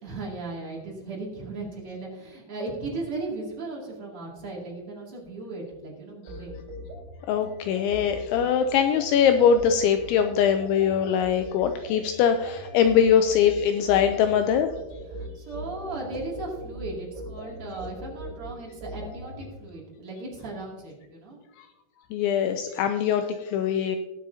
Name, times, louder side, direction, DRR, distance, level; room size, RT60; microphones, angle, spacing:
voice 1, 0.0-6.5 15.1-21.4, right 2 dB, 40° right, -3 dB, 2.4 m, -37 dB
sound 1, 6.3-19.4, equal, 70° right, 6.5 m, -40 dB
voice 2, 7.3-14.7 22.1-24.0, left 8 dB, 85° left, 7 dB, 2.7 m, -22 dB
20.0 x 7.5 x 2.7 m, 1.1 s
omnidirectional pair, 5.7 m